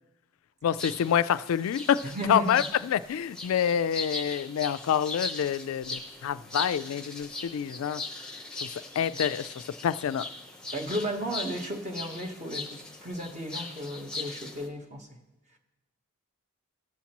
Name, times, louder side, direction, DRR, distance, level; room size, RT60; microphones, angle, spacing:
voice 1, 0.6-8.0 8.5-8.7 9.0-10.3, left 8 dB, 75° left, 16 dB, 0.3 m, -27 dB
sound 1, 0.8-14.7, left 3 dB, 5° left, 0.7 m, -39 dB
voice 2, 2.0-2.6 10.7-15.1, equal, 35° right, 3 dB, 1.1 m, -34 dB
16.5 x 7.1 x 2.9 m, 1.0 s
head